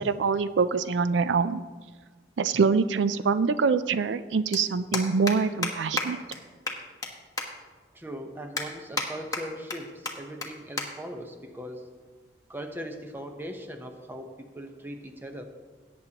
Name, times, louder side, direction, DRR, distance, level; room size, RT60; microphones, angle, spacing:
voice 1, 0.0-1.6 2.4-6.2, right 5 dB, 85° right, 13 dB, 0.4 m, -24 dB
sound 1, 2.2-2.3 3.7-3.8 4.0-4.2 4.5-4.6 4.9-5.3 5.6-5.7 6.0-6.1 6.3-6.4 6.7-7.1 7.4-7.5 7.9-8.0 8.6-9.1 9.3-9.8 10.1-10.2 10.4-10.5 10.8-10.9 11.2-11.4 12.2-12.4, left 3 dB, 20° left, 1.2 m, -30 dB
voice 2, 7.9-11.9 12.5-15.4, equal, 10° right, 5 dB, 0.9 m, -39 dB
17.5 x 8.6 x 2.9 m, 1.4 s
head